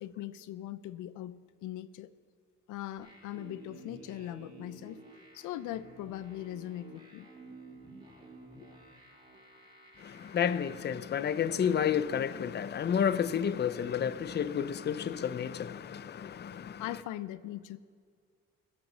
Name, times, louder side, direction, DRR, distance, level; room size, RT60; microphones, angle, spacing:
voice 1, 0.0-2.1 2.7-5.0 5.3-7.3 16.8-17.8, left 13 dB, 85° left, 0.5 m, -40 dB
sound 1, 3.0-11.0, right 2 dB, 15° right, 2.6 m, -52 dB
voice 2, 10.0-16.8, left 8 dB, 35° left, 0.5 m, -31 dB
16.0 x 6.1 x 7.2 m
cardioid pair, 90°, 30 cm